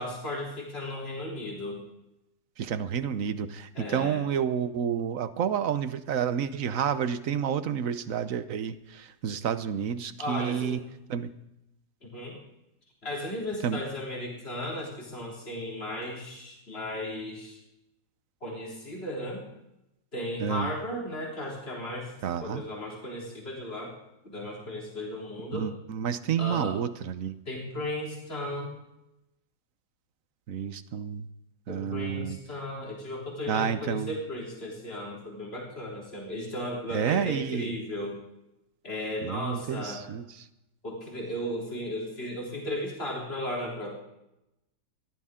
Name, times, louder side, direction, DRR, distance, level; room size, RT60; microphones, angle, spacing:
voice 1, 0.0-1.8 3.7-4.2 10.2-10.8 12.0-12.4 13.0-17.6 18.4-19.4 20.1-22.1 22.4-24.0 24.2-25.7 26.4-26.8 27.5-28.7 31.7-38.2 38.8-40.0 40.8-44.0, left 1 dB, 40° left, -3 dB, 4.1 m, -35 dB
voice 2, 2.6-10.8 11.1-11.3 13.6-13.8 20.4-20.7 22.2-22.6 25.5-27.4 30.5-31.3 31.7-32.4 33.5-34.2 36.9-37.7 39.2-40.2, right 8 dB, 60° right, 12 dB, 1.2 m, -30 dB
21.5 x 15.0 x 3.8 m, 0.87 s
omnidirectional pair, 1.7 m